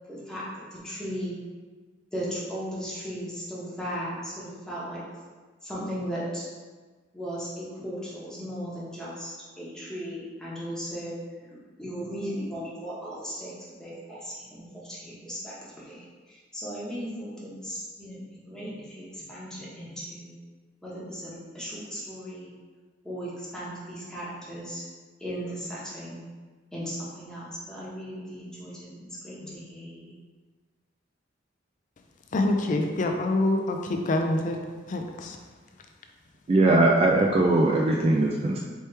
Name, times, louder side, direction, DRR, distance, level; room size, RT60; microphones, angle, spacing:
voice 1, 0.1-0.4 0.7-1.4 2.1-5.0 5.6-6.4 7.1-11.2 11.5-18.2 18.5-20.3 20.8-22.5 23.0-24.8 25.2-26.2 26.7-28.9 29.2-30.1, equal, 5° left, -8 dB, 1.0 m, -37 dB
voice 2, 32.3-34.6 34.9-35.4, left 2 dB, 40° left, 4 dB, 0.4 m, -26 dB
voice 3, 36.5-38.6, right 2 dB, 30° right, -1 dB, 0.3 m, -20 dB
4.4 x 3.1 x 3.3 m, 1.4 s
head